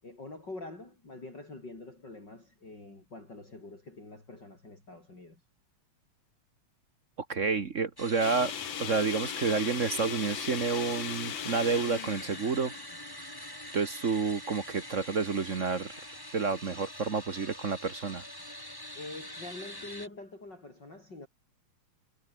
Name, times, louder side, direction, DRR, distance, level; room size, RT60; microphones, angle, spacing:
voice 1, 0.0-5.4 18.9-21.3, left 2 dB, 35° left, 7.3 m, -45 dB
voice 2, 7.3-8.5 8.8-12.8 13.7-15.9 16.3-18.2, right 5 dB, 50° right, 0.9 m, -29 dB
sound 1, 8.0-20.1, left 1 dB, 5° left, 4.7 m, -44 dB
sound 2, 8.2-13.4, left 11 dB, 65° left, 1.2 m, -38 dB
omnidirectional pair, 3.3 m